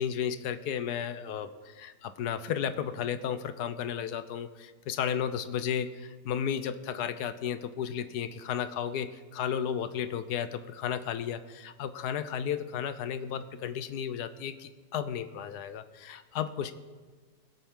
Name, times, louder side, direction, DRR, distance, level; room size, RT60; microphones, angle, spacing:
voice 1, 0.0-16.7, left 8 dB, 80° left, 12 dB, 1.2 m, -33 dB
22.5 x 8.2 x 3.7 m, 1.4 s
omnidirectional pair, 1.7 m